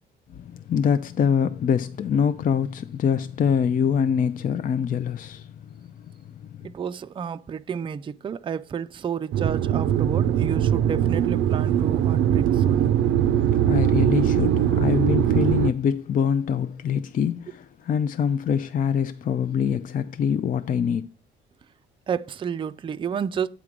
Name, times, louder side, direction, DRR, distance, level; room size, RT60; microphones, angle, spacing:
voice 1, 0.3-5.8 6.3-6.7 13.7-21.1, left 7 dB, 45° left, 0.4 m, -24 dB
voice 2, 6.6-12.9 22.1-23.5, right 7 dB, 25° right, 0.3 m, -31 dB
sound 1, 9.3-15.7, right 10 dB, 85° right, 0.5 m, -21 dB
8.3 x 3.7 x 5.9 m
cardioid pair, 90°, 20 cm